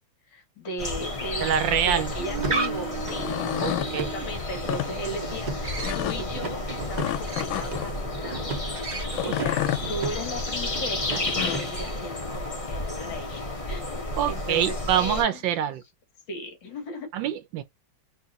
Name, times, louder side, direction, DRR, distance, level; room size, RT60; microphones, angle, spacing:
voice 1, 0.3-1.6 1.8-3.4 3.8-8.8 9.2-15.5 16.3-17.1, left 1 dB, 65° left, 2.1 m, -37 dB
sound 1, 0.8-15.2, left 2 dB, 25° left, 0.7 m, -32 dB
voice 2, 1.4-2.1 3.5-4.1 14.2-15.8 17.1-17.6, right 9 dB, 75° right, 1.3 m, -25 dB
sound 2, 2.0-12.0, right 4 dB, 55° right, 0.4 m, -34 dB
sound 3, 3.0-3.9 4.6-4.9 5.8-6.2 7.0-7.9 9.1-9.8 11.0-11.7, left 13 dB, 90° left, 1.4 m, -29 dB
4.6 x 2.6 x 2.8 m
omnidirectional pair, 2.2 m